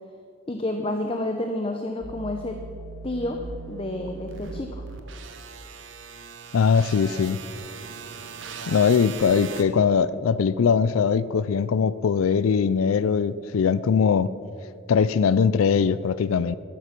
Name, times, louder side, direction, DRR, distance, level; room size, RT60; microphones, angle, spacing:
voice 1, 0.5-2.6 3.0-3.4 3.7-4.8, left 1 dB, 25° left, 5 dB, 0.7 m, -29 dB
sound 1, 2.0-9.6, right 4 dB, 65° right, 1.0 m, -39 dB
voice 2, 6.5-7.4 8.7-14.3 14.9-16.6, left 6 dB, 90° left, 17 dB, 0.4 m, -21 dB
13.0 x 12.0 x 6.0 m, 2.5 s
head